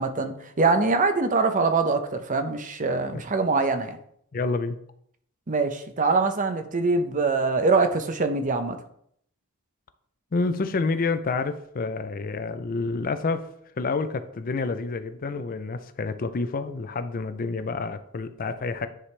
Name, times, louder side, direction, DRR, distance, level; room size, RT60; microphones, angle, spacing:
voice 1, 0.0-4.0 5.5-8.8, right 3 dB, 35° right, 8 dB, 0.7 m, -23 dB
voice 2, 4.3-4.8 10.3-13.5 13.8-18.9, left 3 dB, 40° left, 10 dB, 0.5 m, -28 dB
10.0 x 4.9 x 3.3 m, 0.68 s
head